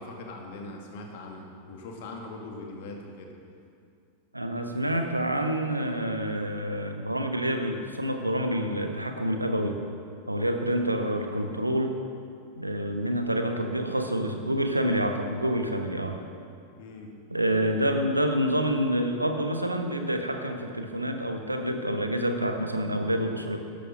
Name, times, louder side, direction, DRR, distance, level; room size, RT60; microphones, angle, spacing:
voice 1, 0.0-3.3 10.8-11.2 16.8-17.1, left 2 dB, 50° left, 1 dB, 2.2 m, -41 dB
voice 2, 4.3-9.8 10.3-12.0 12.6-16.2 17.3-23.6, equal, 85° right, 5 dB, 1.1 m, -27 dB
13.0 x 12.0 x 5.0 m, 2.4 s
figure-of-eight pair, 90°, 0 cm